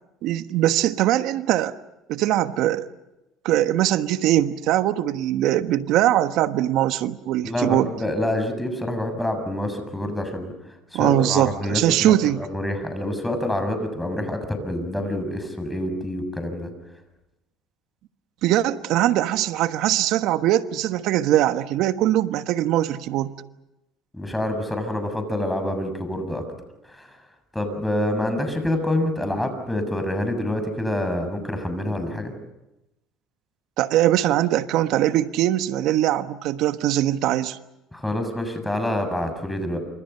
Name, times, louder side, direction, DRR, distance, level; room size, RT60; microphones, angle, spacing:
voice 1, 0.2-1.7 2.1-2.9 3.4-7.9 10.9-12.4 18.4-23.3 33.8-37.6, right 13 dB, 70° right, 11 dB, 1.3 m, -21 dB
voice 2, 7.4-10.5 10.9-16.7 24.1-26.4 26.8-27.2 27.5-32.3 37.9-39.8, left 1 dB, 5° left, 7 dB, 6.9 m, -27 dB
28.5 x 26.5 x 5.7 m, 0.95 s
supercardioid pair, 90°, 0 cm